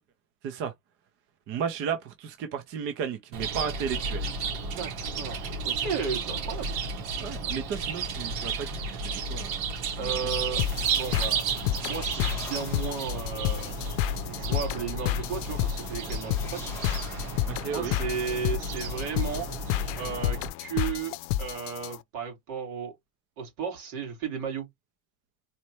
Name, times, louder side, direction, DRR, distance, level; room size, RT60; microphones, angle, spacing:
voice 1, 1.5-4.3 7.2-9.0 9.3-9.6 10.0-10.1 17.5-18.0, right 7 dB, 30° right, 0.3 m, -33 dB
Chirp tweet, 3.3-20.5, right 4 dB, 75° right, 2.2 m, -33 dB
voice 2, 4.8-6.8 10.0-10.7 10.9-11.4 11.8-13.8 14.2-16.6 17.7-19.5 20.0-22.9 23.4-24.7, right 6 dB, 55° right, 3.0 m, -34 dB
sound 1, 10.6-22.0, left 13 dB, 90° left, 0.6 m, -31 dB
sound 2, 11.3-13.4 15.7-18.1, left 2 dB, 5° left, 1.8 m, -47 dB
4.2 x 3.1 x 3.0 m
cardioid pair, 180°, 48 cm